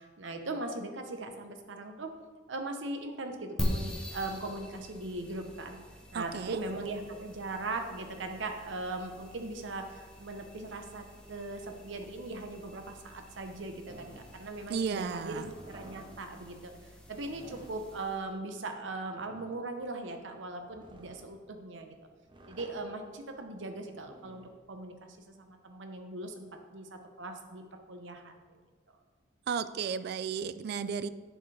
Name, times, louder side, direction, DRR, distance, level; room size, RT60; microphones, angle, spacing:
voice 1, 0.0-2.1 2.5-5.8 6.1-16.7 17.1-22.0 22.5-24.4 24.7-28.3, right 2 dB, 85° right, 5 dB, 0.8 m, -39 dB
sound 1, 3.6-18.3, equal, 5° left, 0.9 m, -43 dB
voice 2, 6.1-6.6 14.7-15.5 29.5-31.1, right 6 dB, 60° right, 14 dB, 0.3 m, -34 dB
sound 2, 13.9-25.3, right 1 dB, 25° right, 0.7 m, -55 dB
9.9 x 4.6 x 3.3 m, 1.4 s
head